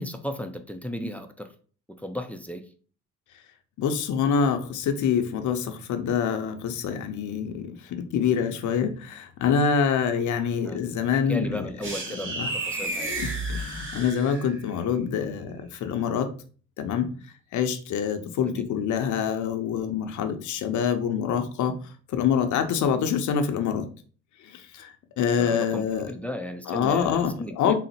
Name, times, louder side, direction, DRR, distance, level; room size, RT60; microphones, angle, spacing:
voice 1, 0.0-1.5 1.9-2.7 10.6-10.8 11.3-13.2 15.2-15.3 18.4-18.6 25.3-27.7, equal, 5° left, 7 dB, 0.4 m, -35 dB
voice 2, 3.8-11.7 12.2-12.5 13.2-16.3 16.8-17.1 17.5-21.8 22.1-23.9 24.4-26.1 26.7-27.7, left 7 dB, 75° left, 7 dB, 0.7 m, -26 dB
sound 1, 11.8-14.7, right 2 dB, 40° right, 1.8 m, -32 dB
4.0 x 2.1 x 4.1 m, 0.41 s
cardioid pair, 90°, 30 cm